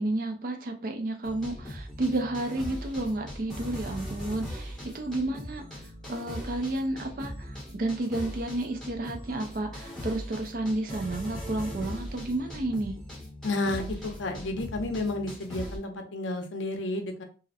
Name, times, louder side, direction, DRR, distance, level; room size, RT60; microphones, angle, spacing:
voice 1, 0.0-5.6 6.1-12.9, right 2 dB, 50° right, 5 dB, 0.4 m, -31 dB
sound 1, 1.2-15.8, equal, 5° left, 0.7 m, -40 dB
voice 2, 13.4-17.2, left 2 dB, 85° left, 5 dB, 0.5 m, -31 dB
2.5 x 2.0 x 2.6 m, 0.36 s
head